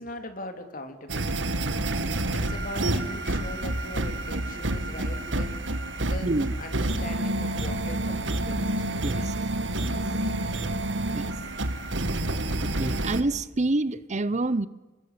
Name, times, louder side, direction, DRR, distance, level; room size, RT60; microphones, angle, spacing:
voice 1, 0.0-1.7 1.9-6.3 6.6-9.4, left 1 dB, 45° left, 7 dB, 3.6 m, -41 dB
sound 1, 1.1-13.2, right 1 dB, 70° right, 2.1 m, -28 dB
voice 2, 6.2-6.5 9.0-9.3 9.8-9.9 11.1-11.3 12.6-14.7, right 2 dB, 35° right, 16 dB, 0.8 m, -27 dB
29.0 x 20.5 x 8.8 m, 1.2 s
head